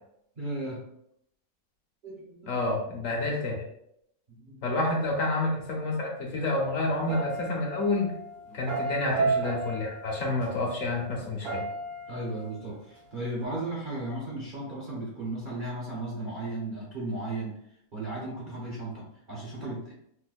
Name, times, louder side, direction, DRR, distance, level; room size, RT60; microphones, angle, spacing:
voice 1, 0.4-0.8 2.0-2.6 4.3-4.6 8.5-8.6 12.1-17.5 17.9-19.9, right 2 dB, 45° right, -6 dB, 0.6 m, -35 dB
voice 2, 2.5-3.6 4.6-8.1 8.5-11.6, left 2 dB, 65° left, -2 dB, 1.1 m, -29 dB
sound 1, 6.9-12.6 12.9-13.1 13.4-13.5, right 3 dB, 80° right, 1.6 m, -34 dB
4.5 x 2.1 x 2.4 m, 0.76 s
omnidirectional pair, 1.6 m